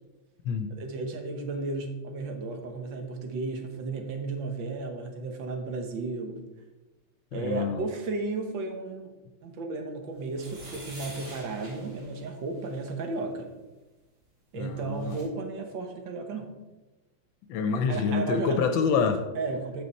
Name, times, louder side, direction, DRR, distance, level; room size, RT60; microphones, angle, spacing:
voice 1, 0.8-6.4 7.3-9.1 9.4-13.5 14.5-16.5 17.9-18.6 19.3-19.8, right 3 dB, 65° right, 4 dB, 1.5 m, -34 dB
voice 2, 7.3-7.8 14.5-15.2 17.5-19.2, left 5 dB, 70° left, 7 dB, 1.3 m, -27 dB
sound 1, 10.3-12.9 14.6-14.7 14.8-15.2, right 1 dB, 90° right, 3.9 m, -46 dB
7.8 x 6.8 x 4.1 m, 1.1 s
omnidirectional pair, 2.4 m